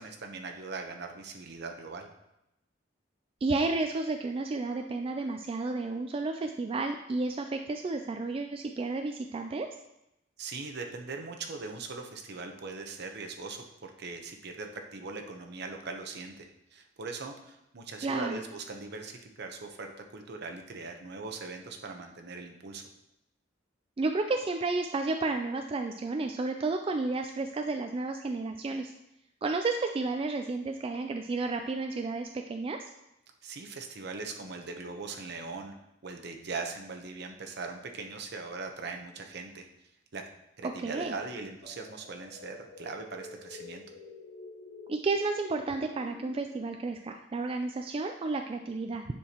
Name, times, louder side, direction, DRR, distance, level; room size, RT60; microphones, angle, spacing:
voice 1, 0.0-2.1 10.4-22.9 33.4-35.7 36.0-39.7 40.1-40.2 40.6-43.8, right 3 dB, 60° right, 4 dB, 0.8 m, -40 dB
voice 2, 3.4-9.7 18.0-18.4 24.0-28.9 29.4-32.9 40.6-41.1 44.9-49.1, right 3 dB, 30° right, 5 dB, 0.3 m, -32 dB
sound 1, 41.6-46.6, left 3 dB, 55° left, 2.2 m, -49 dB
9.8 x 4.5 x 2.9 m, 0.86 s
head